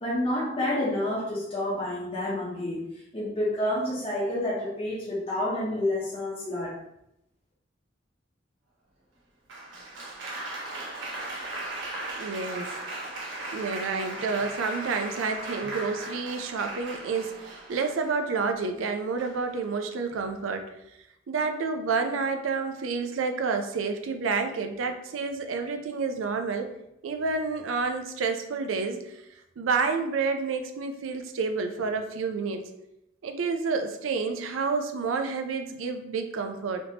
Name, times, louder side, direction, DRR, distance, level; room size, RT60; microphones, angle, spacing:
voice 1, 0.0-2.8 3.1-6.7, left 1 dB, 30° left, -8 dB, 0.7 m, -29 dB
Applause, 9.5-18.4 19.2-19.6, right 2 dB, 75° right, 0.9 m, -37 dB
voice 2, 12.2-12.8 13.5-20.7 21.3-26.7 27.0-29.2 29.6-32.7 33.2-36.8, right 4 dB, 90° right, 6 dB, 0.4 m, -29 dB
3.4 x 2.7 x 2.7 m, 0.83 s
head